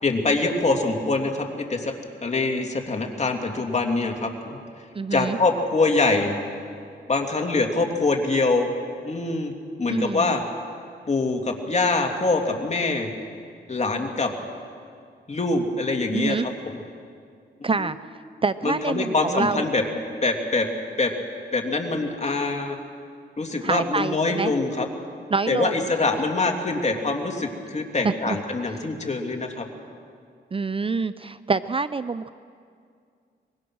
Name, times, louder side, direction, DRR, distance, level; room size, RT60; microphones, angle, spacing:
voice 1, 0.0-1.9 2.2-4.6 5.1-6.3 7.1-8.7 9.0-9.5 9.8-10.4 11.1-13.1 13.7-14.3 15.3-16.4 17.8-17.9 18.6-19.8 20.2-20.7 21.0-21.1 21.5-22.8 23.4-24.9 25.5-29.7, left 3 dB, 40° left, 2 dB, 2.7 m, -24 dB
voice 2, 4.9-5.4 9.9-10.4 16.1-16.5 17.6-18.0 18.4-19.7 23.6-24.5 25.3-25.9 28.0-28.4 30.5-32.3, right 4 dB, 30° right, 14 dB, 0.5 m, -26 dB
23.5 x 21.0 x 6.2 m, 2.2 s
cardioid pair, 75°, 18 cm